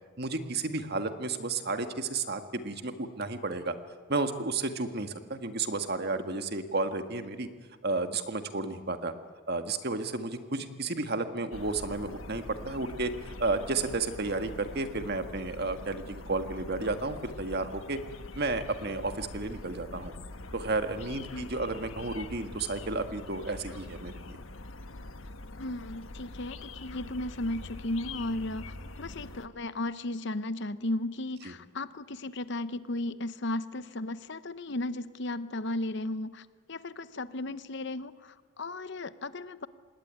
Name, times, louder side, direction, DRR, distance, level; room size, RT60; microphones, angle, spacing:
voice 1, 0.2-3.7 4.1-7.5 7.8-9.1 9.5-18.0 18.3-20.1 20.5-24.4 31.4-31.5, right 3 dB, 50° right, 8 dB, 1.7 m, -32 dB
sound 1, 11.5-29.5, left 2 dB, 70° left, 1.4 m, -44 dB
voice 2, 25.6-39.7, left 2 dB, 55° left, 14 dB, 0.9 m, -35 dB
26.5 x 20.0 x 9.6 m, 1.5 s
head